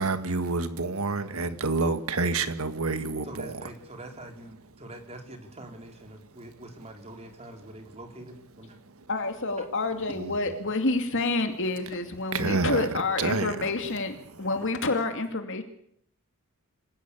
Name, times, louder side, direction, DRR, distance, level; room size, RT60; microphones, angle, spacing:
voice 1, 0.0-3.5 10.2-10.3 12.3-12.9 13.2-13.7, right 3 dB, 70° right, 1.7 m, -28 dB
voice 2, 3.2-8.8 9.6-9.7, right 1 dB, 30° right, 3.6 m, -44 dB
voice 3, 9.1-15.6, left 3 dB, 60° left, 2.5 m, -28 dB
26.0 x 16.5 x 8.6 m
head